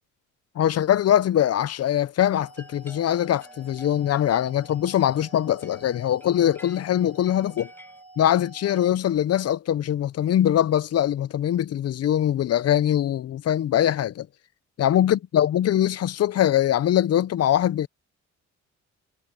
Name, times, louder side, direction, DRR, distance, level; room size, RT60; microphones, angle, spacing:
voice 1, 0.6-7.7 8.2-14.3 14.8-17.9, left 11 dB, 55° left, 0.7 m, -22 dB
sound 1, 2.3-8.9, right 2 dB, 25° right, 6.3 m, -49 dB
sound 2, 2.6-8.0, left 1 dB, 5° left, 7.7 m, -52 dB
cardioid pair, 90°, 30 cm